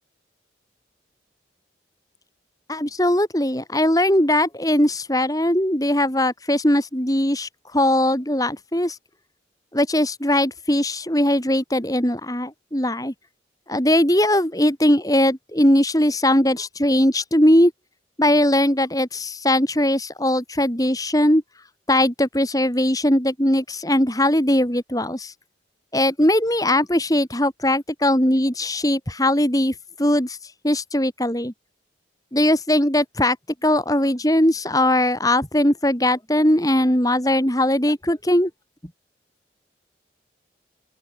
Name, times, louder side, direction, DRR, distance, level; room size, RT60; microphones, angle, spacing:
voice 1, 2.7-9.0 9.7-13.1 13.7-17.7 18.2-21.4 21.9-25.3 25.9-30.4 30.6-31.5 32.3-33.4 33.6-38.5, left 1 dB, 20° left, 3.8 m, -20 dB
open air
head